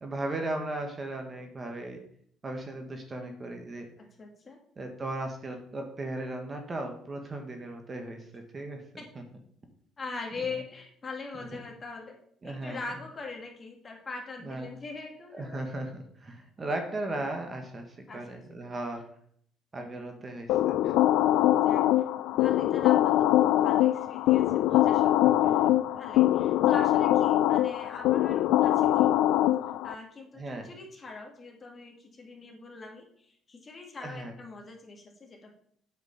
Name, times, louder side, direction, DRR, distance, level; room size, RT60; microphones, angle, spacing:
voice 1, 0.0-2.0 2.4-3.9 4.8-9.2 10.4-10.6 11.4-11.6 12.4-12.8 14.4-14.7 15.3-19.0 19.7-20.9 25.2-25.5 30.4-30.7 34.0-34.3, right 2 dB, 25° right, 4 dB, 1.4 m, -37 dB
voice 2, 4.0-4.6 9.0-9.1 10.0-12.2 12.4-15.6 18.1-18.4 18.7-18.8 19.8-20.0 21.5-21.8 22.3-29.3 29.8-35.5, left 3 dB, 30° left, 1 dB, 1.9 m, -42 dB
sound 1, 20.5-29.9, left 13 dB, 90° left, 0.4 m, -23 dB
8.2 x 5.1 x 6.9 m, 0.64 s
cardioid pair, 125°, 0 cm